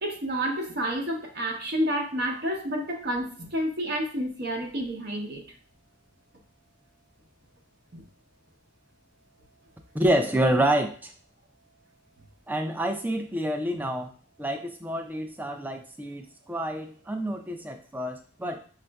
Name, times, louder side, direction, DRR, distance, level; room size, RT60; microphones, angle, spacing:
voice 1, 0.0-5.4 7.9-8.0, equal, 55° right, 1 dB, 0.7 m, -29 dB
voice 2, 9.9-11.1 12.5-14.1 14.4-18.6, right 1 dB, 10° right, 5 dB, 0.3 m, -28 dB
6.0 x 2.4 x 2.2 m, 0.43 s
head